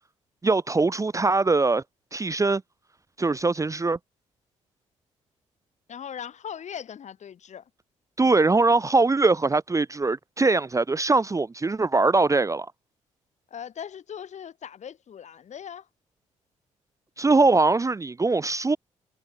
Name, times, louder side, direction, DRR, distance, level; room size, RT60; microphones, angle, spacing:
voice 1, 0.4-1.8 2.1-2.6 3.2-4.0 8.2-12.7 17.2-18.8, right 3 dB, 20° right, 0.9 m, -22 dB
voice 2, 5.9-7.7 13.5-15.9, left 8 dB, 45° left, 2.4 m, -39 dB
figure-of-eight pair, 45°, 16 cm